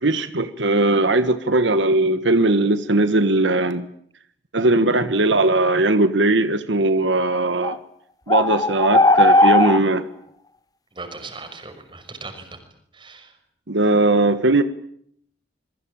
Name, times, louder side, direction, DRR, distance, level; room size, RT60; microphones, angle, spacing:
voice 1, 0.0-3.9 4.5-7.8 8.3-10.0 13.7-14.6, right 2 dB, 85° right, 11 dB, 1.5 m, -19 dB
sound 1, 7.6-7.8 8.3-9.8, left 2 dB, 20° left, 1.1 m, -16 dB
voice 2, 10.9-12.6 12.9-13.4, right 3 dB, 25° right, 7 dB, 5.9 m, -38 dB
27.0 x 22.5 x 8.9 m, 0.67 s
head